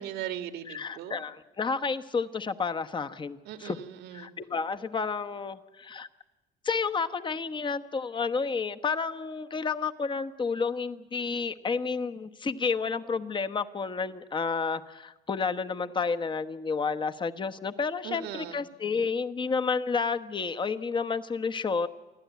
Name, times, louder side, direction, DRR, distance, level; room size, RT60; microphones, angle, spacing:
voice 1, 0.0-1.2 3.5-4.3 18.0-18.6, right 11 dB, 80° right, 8 dB, 1.7 m, -38 dB
voice 2, 0.7-3.8 4.1-6.1 6.6-21.9, left 5 dB, 30° left, 9 dB, 1.1 m, -30 dB
28.0 x 12.0 x 9.4 m, 1.1 s
cardioid pair, 110°, 17 cm